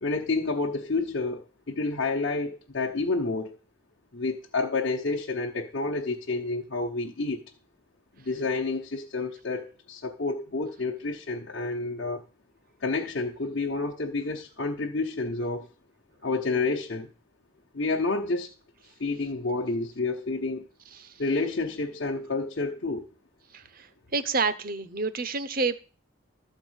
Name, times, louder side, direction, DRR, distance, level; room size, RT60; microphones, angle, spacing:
voice 1, 0.0-3.6 4.1-7.4 8.2-12.2 12.8-15.7 16.2-17.1 17.7-18.5 19.0-20.7 21.2-23.1, left 3 dB, 60° left, 1.0 m, -29 dB
voice 2, 24.1-25.8, right 4 dB, 45° right, 0.8 m, -27 dB
13.5 x 4.5 x 8.0 m
head